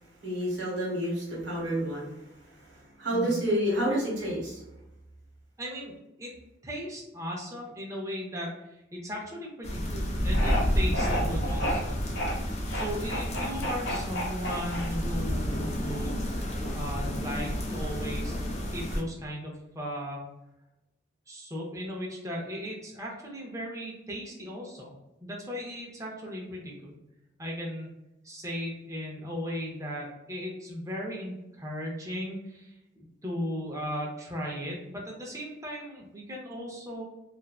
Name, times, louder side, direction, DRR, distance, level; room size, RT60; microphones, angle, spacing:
voice 1, 0.2-4.6, equal, 75° right, -3 dB, 1.1 m, -30 dB
voice 2, 5.6-5.9 6.2-6.3 6.6-8.5 8.9-11.9 12.7-16.1 16.7-18.4 18.7-20.2 21.3-24.9 25.2-27.0 27.4-27.9 28.2-37.0, equal, 15° right, -2 dB, 0.6 m, -37 dB
sound 1, 9.6-19.0, equal, 35° left, 0.4 m, -30 dB
sound 2, 10.3-10.6 10.9-11.8 12.1-12.3 12.7-15.2, equal, 80° left, 1.0 m, -31 dB
2.5 x 2.2 x 2.3 m, 0.92 s
head